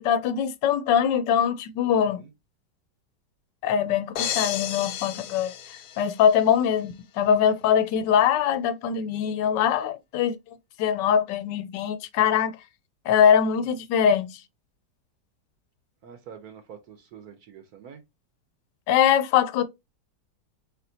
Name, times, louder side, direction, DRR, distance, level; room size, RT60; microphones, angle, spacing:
voice 1, 0.0-2.2 3.6-5.5 6.0-12.6 13.1-14.4 18.9-19.6, left 8 dB, 85° left, 1.3 m, -22 dB
voice 2, 1.9-2.3 13.6-13.8 16.0-18.0, right 8 dB, 65° right, 1.2 m, -46 dB
sound 1, 4.2-6.4, left 10 dB, 65° left, 0.9 m, -32 dB
4.4 x 4.2 x 2.7 m
omnidirectional pair, 1.9 m